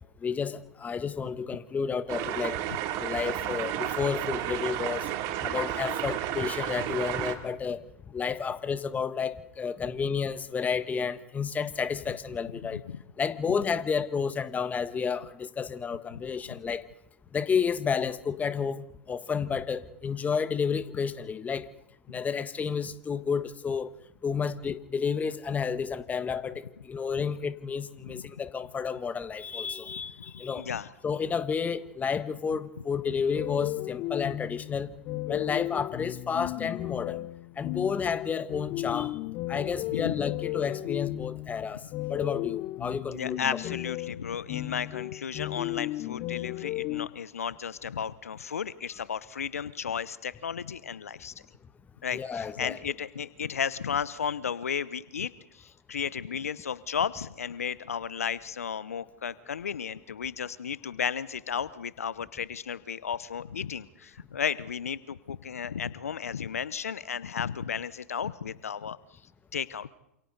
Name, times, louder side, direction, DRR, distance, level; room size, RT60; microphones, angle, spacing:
voice 1, 0.2-2.6 3.0-5.1 5.4-12.8 13.2-16.8 17.3-21.7 22.1-23.9 24.2-30.7 31.0-34.9 35.3-37.3 37.6-39.1 39.5-43.6 52.1-52.8, left 6 dB, 20° left, 1.5 m, -31 dB
sound 1, 2.1-7.3, right 11 dB, 45° right, 2.9 m, -32 dB
voice 2, 30.5-30.9 39.9-40.2 43.1-51.3 52.0-69.0 69.5-69.9, left 7 dB, 80° left, 0.9 m, -34 dB
sound 2, 33.3-47.1, left 19 dB, 45° left, 0.8 m, -34 dB
28.5 x 28.0 x 4.0 m
hypercardioid pair, 95°, 8 cm